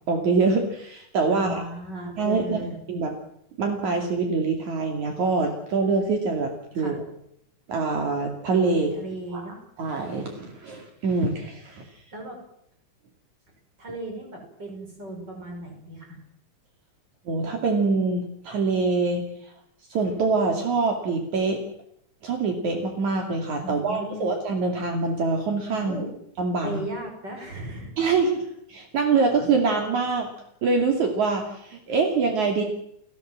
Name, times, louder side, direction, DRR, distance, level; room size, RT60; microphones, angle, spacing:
voice 1, 0.1-1.6 2.2-3.1 3.6-7.0 7.7-8.9 9.3-9.4 9.8-11.9 17.3-19.2 19.9-21.6 22.2-26.0 26.4-26.8 28.0-28.4 28.7-30.3 30.6-32.6, right 4 dB, 65° right, 3 dB, 3.9 m, -24 dB
voice 2, 1.3-2.8 6.7-6.9 8.7-9.6 12.1-12.4 13.8-16.2 23.6-24.3 25.8-26.1 26.6-27.9, right 1 dB, 30° right, 2 dB, 6.4 m, -36 dB
30.0 x 17.0 x 7.5 m, 0.75 s
omnidirectional pair, 3.6 m